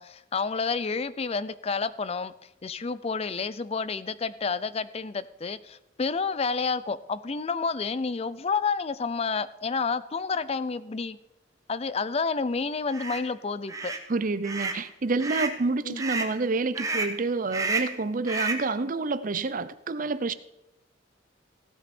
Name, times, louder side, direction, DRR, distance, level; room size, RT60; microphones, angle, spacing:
voice 1, 0.0-2.3 2.6-11.2 11.7-13.9 15.8-16.0, left 4 dB, 35° left, 16 dB, 0.5 m, -30 dB
sound 1, 12.9-13.2 13.7-14.0 14.4-14.8 15.2-15.6 16.0-16.3 16.8-17.2 17.5-18.0 18.3-18.7, right 3 dB, 20° right, 1.1 m, -30 dB
voice 2, 14.1-20.3, right 3 dB, 45° right, 14 dB, 0.6 m, -28 dB
16.0 x 8.8 x 4.3 m, 0.88 s
head